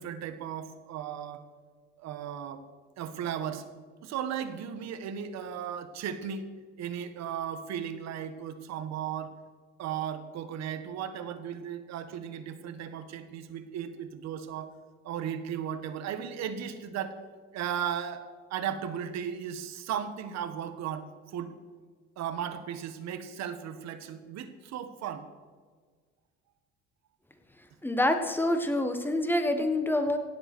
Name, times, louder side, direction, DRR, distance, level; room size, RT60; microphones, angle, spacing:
voice 1, 0.0-1.4 2.0-2.6 3.0-3.7 4.0-6.5 6.8-9.3 9.8-14.7 15.0-17.1 17.5-21.5 22.2-25.3, right 8 dB, 60° right, 10 dB, 1.4 m, -36 dB
voice 2, 27.8-30.2, left 1 dB, 5° left, 7 dB, 1.5 m, -26 dB
17.0 x 8.0 x 6.1 m, 1.5 s
cardioid pair, 120°, 30 cm